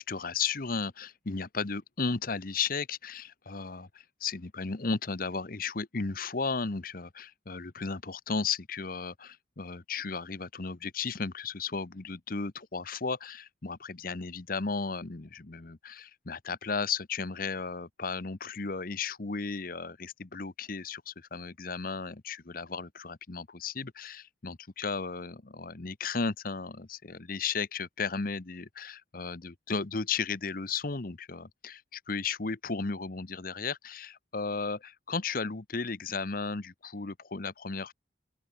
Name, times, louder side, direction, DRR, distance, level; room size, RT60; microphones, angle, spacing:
voice 1, 0.0-3.9 4.2-37.9, left 4 dB, 50° left, 1.0 m, -34 dB
open air
head